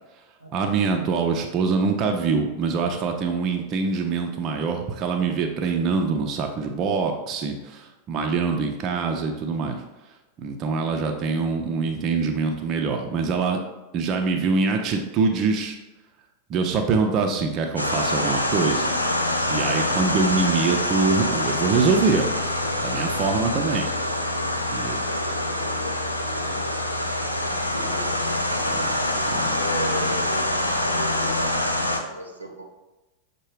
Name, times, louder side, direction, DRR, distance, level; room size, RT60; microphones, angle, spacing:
voice 1, 0.5-9.8 10.4-13.6 13.9-15.8 16.5-18.9 19.5-22.3 22.8-23.9 24.7-25.0 28.7-28.9 29.3-29.4, right 4 dB, 35° right, 3 dB, 0.4 m, -24 dB
sound 1, 17.8-32.0, left 1 dB, 85° left, 0.4 m, -25 dB
voice 2, 25.1-25.7 27.4-32.7, right 1 dB, 85° right, 1 dB, 0.6 m, -36 dB
6.3 x 2.2 x 3.2 m, 1.1 s
figure-of-eight pair, 90°, 0 cm